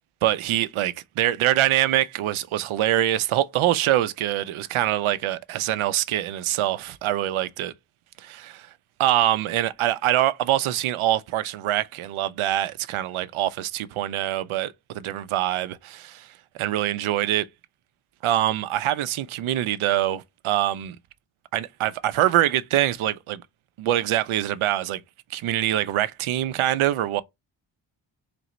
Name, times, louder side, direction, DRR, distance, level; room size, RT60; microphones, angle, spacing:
voice 1, 0.2-7.7 8.2-8.7 9.0-17.5 18.2-21.0 21.5-23.4 23.8-25.0 25.3-27.2, right 13 dB, 85° right, 0.6 m, -24 dB
3.9 x 3.4 x 3.0 m
wide cardioid pair, 170°, 48 cm